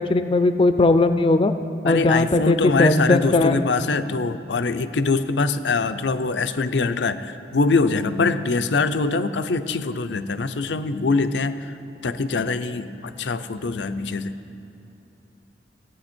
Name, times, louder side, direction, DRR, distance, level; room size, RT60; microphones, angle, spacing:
voice 1, 0.0-1.5 1.8-3.6, left 2 dB, 30° left, 10 dB, 0.4 m, -18 dB
voice 2, 1.8-11.8 12.0-14.3, left 3 dB, 85° left, 11 dB, 0.6 m, -23 dB
17.0 x 8.7 x 4.4 m, 2.9 s
head